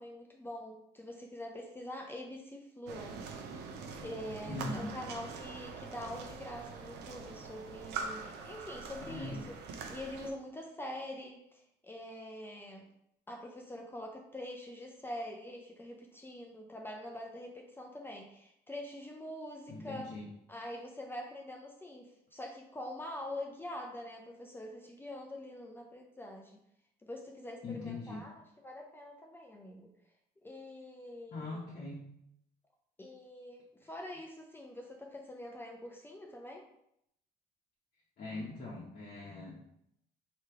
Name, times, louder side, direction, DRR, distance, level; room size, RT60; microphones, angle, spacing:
voice 1, 0.0-3.2 4.0-9.4 9.9-12.9 13.3-20.1 20.5-26.5 27.0-29.9 30.4-31.6 33.0-36.6, left 1 dB, 15° left, 0 dB, 0.5 m, -45 dB
sound 1, 2.9-10.3, right 5 dB, 85° right, 0.6 m, -44 dB
voice 2, 4.5-4.9 9.1-9.5 19.7-20.3 27.6-28.2 31.3-32.1 38.2-39.6, left 2 dB, 50° left, -5 dB, 1.0 m, -41 dB
3.2 x 2.9 x 4.6 m, 0.76 s
cardioid pair, 110°, 17 cm